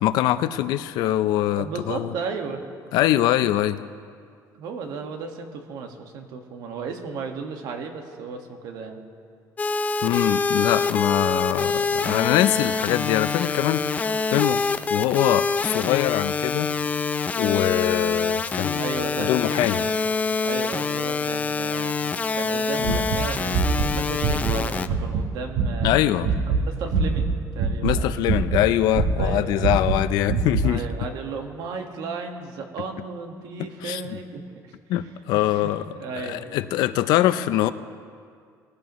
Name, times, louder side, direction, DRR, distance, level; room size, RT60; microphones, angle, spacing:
voice 1, 0.0-2.1 2.9-3.8 10.0-14.1 14.3-14.6 14.9-16.7 17.4-18.9 19.2-19.9 22.8-23.0 25.8-26.3 27.8-30.8 33.8-34.2 34.9-37.7, left 14 dB, 80° left, 13 dB, 0.6 m, -23 dB
voice 2, 1.6-2.6 4.5-9.0 18.8-20.1 20.4-22.0 22.3-26.3 26.6-28.2 29.2-29.9 30.6-34.7 35.3-36.7, right 5 dB, 70° right, 4 dB, 1.7 m, -35 dB
sound 1, 9.6-24.9, left 4 dB, 20° left, 0.5 m, -25 dB
sound 2, 22.8-25.2 25.5-25.9 26.2-27.3 27.6-28.6 28.9-30.7, right 4 dB, 90° right, 1.3 m, -23 dB
21.0 x 15.5 x 3.1 m, 2.2 s
cardioid pair, 135°, 7 cm